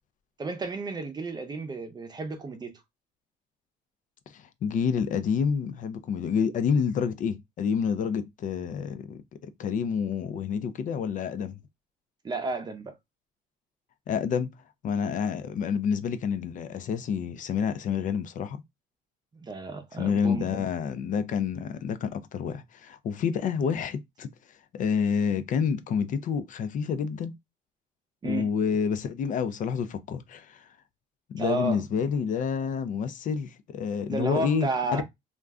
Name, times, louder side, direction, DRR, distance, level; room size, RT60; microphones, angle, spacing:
voice 1, 0.4-2.8 12.2-12.9 19.4-20.6 28.2-28.5 31.4-31.8 34.1-35.0, right 3 dB, 25° right, 0.6 m, -32 dB
voice 2, 4.3-11.6 14.1-14.5 14.8-18.6 19.9-24.3 24.7-27.3 28.2-30.7 31.3-35.0, left 6 dB, 50° left, 0.4 m, -28 dB
2.4 x 2.1 x 3.5 m
cardioid pair, 110°, 17 cm